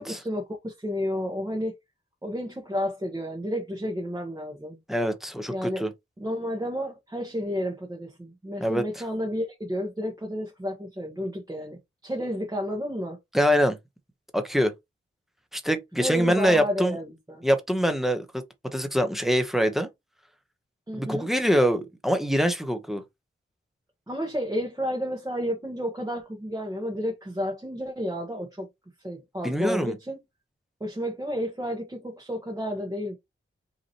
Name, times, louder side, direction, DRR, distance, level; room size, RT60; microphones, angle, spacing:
voice 1, 0.0-1.7 2.2-4.8 5.5-5.8 6.2-13.2 16.0-17.4 20.9-21.3 24.1-28.7 29.0-30.2 30.8-33.2, equal, 15° right, 1.1 m, -31 dB
voice 2, 4.9-5.9 8.6-8.8 13.3-13.8 14.3-14.7 15.5-17.0 17.4-18.3 18.7-19.9 20.9-23.0 29.4-29.9, equal, ahead, 0.8 m, -24 dB
5.3 x 2.9 x 2.9 m
wide cardioid pair, 120°, 21 cm